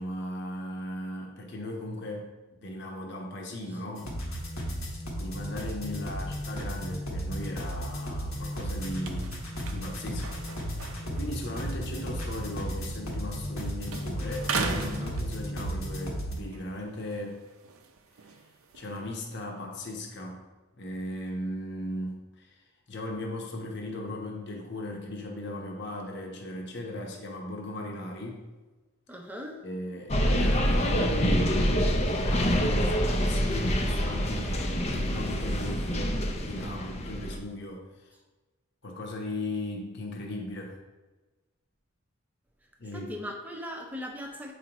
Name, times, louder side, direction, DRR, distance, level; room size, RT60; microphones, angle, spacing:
voice 1, 0.0-4.1 5.2-9.4 9.7-10.4 11.0-17.4 18.7-20.4 20.8-28.4 29.6-38.1 38.8-40.8 42.8-43.1, left 1 dB, 50° left, 0 dB, 1.0 m, -37 dB
sound 1, 4.0-16.4, equal, 80° left, 1.3 m, -34 dB
sound 2, 8.0-13.6 13.9-15.9 16.4-19.4, right 4 dB, 80° right, 0.6 m, -39 dB
voice 2, 29.1-29.6 42.9-44.5, equal, 10° right, 2 dB, 0.6 m, -38 dB
sound 3, 30.1-37.4, equal, 30° left, 0.5 m, -26 dB
7.7 x 5.0 x 3.0 m, 1.2 s
head